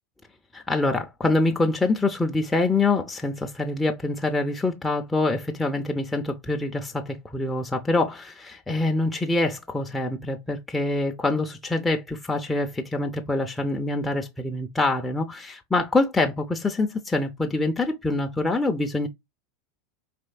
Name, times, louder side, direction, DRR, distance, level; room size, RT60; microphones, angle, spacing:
voice 1, 0.5-19.1, left 2 dB, 10° left, 0.6 m, -25 dB
4.3 x 3.0 x 2.3 m
hypercardioid pair, 100°, 0 cm